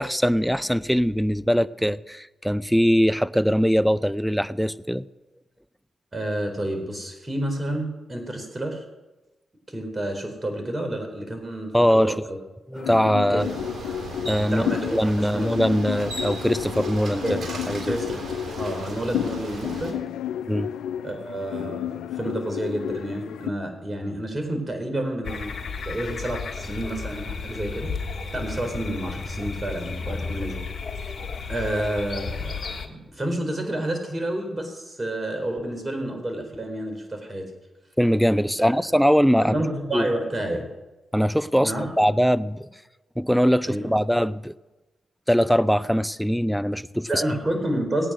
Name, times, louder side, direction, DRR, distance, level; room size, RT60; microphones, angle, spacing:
voice 1, 0.0-5.0 11.7-12.2 12.7-13.5 14.3-17.2 17.7-18.0 20.5-20.7 38.0-39.6 39.9-40.1 41.1-42.7 43.2-44.5 45.3-47.2, equal, ahead, 17 dB, 0.7 m, -22 dB
voice 2, 6.1-8.8 9.7-12.4 13.3-13.6 14.5-15.5 17.2-17.4 17.9-18.2 18.6-20.0 21.0-25.5 25.8-27.9 28.3-30.6 31.5-37.5 38.6-38.7 39.4-40.6 41.6-41.9 43.7-43.9 47.1-48.1, right 1 dB, 30° right, 5 dB, 4.4 m, -29 dB
sound 1, 12.8-23.5, left 11 dB, 85° left, 0.4 m, -32 dB
Bicycle, 13.4-19.9, right 3 dB, 60° right, 3.6 m, -36 dB
sound 2, 25.2-32.9, left 5 dB, 60° left, 1.5 m, -33 dB
18.5 x 8.9 x 6.3 m, 1.1 s
supercardioid pair, 40°, 0 cm